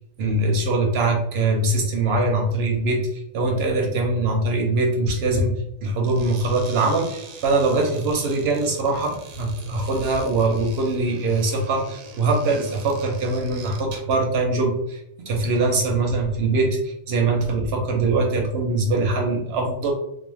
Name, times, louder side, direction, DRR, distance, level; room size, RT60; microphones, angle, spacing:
voice 1, 0.2-5.5 5.8-15.0 15.3-19.9, right 2 dB, 65° right, 1 dB, 0.7 m, -22 dB
sound 1, 6.0-14.3, right 4 dB, 85° right, 1.0 m, -42 dB
2.4 x 2.0 x 3.1 m, 0.79 s
omnidirectional pair, 1.4 m